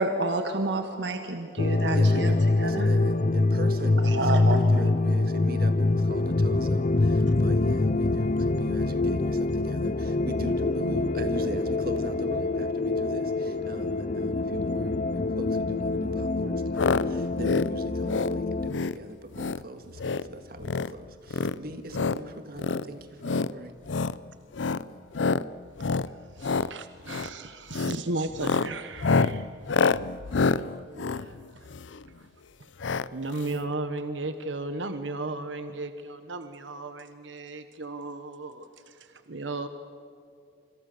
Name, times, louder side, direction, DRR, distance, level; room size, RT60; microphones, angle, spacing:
voice 1, 0.0-2.3 2.6-2.9 4.1-4.6, right 2 dB, 70° right, 6 dB, 1.4 m, -29 dB
sound 1, 1.6-18.7, left 2 dB, 40° left, 0.5 m, -25 dB
voice 2, 1.9-23.7, right 1 dB, 55° right, 8 dB, 1.9 m, -40 dB
sound 2, 16.7-17.0 17.3-17.7 18.0-18.3 18.7-19.0 19.3-19.6 19.9-20.3 20.6-20.9 21.3-22.2 22.6-22.8 23.2-23.5 23.9-24.2 24.5-24.8 25.1-25.4 25.8-26.1 26.4-26.7 27.1-27.3 27.7-28.0 28.3-32.0 32.8-33.1 33.4-33.5 33.6-33.7, left 4 dB, 85° left, 0.6 m, -27 dB
voice 3, 26.3-29.5 30.3-31.7 32.1-32.3 33.1-39.7, right 2 dB, 85° right, 9 dB, 1.3 m, -35 dB
27.0 x 26.5 x 6.8 m, 2.4 s
head